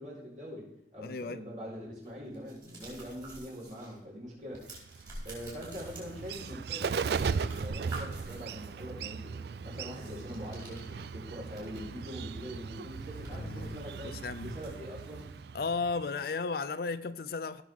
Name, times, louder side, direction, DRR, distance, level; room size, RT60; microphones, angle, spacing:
voice 1, 0.0-4.8 5.2-15.3, equal, 40° right, 4.6 m, -43 dB
voice 2, 1.0-1.4 13.3-13.8 14.2-14.5 15.5-17.6, left 4 dB, 55° left, 0.4 m, -34 dB
sound 1, 2.0-4.0 4.2-6.8 7.1-8.8 9.8-12.0 12.3-12.4 12.8-15.4, right 2 dB, 25° right, 4.4 m, -49 dB
Bird, 4.7-16.2, right 5 dB, 60° right, 0.3 m, -38 dB
16.5 x 6.5 x 3.6 m
head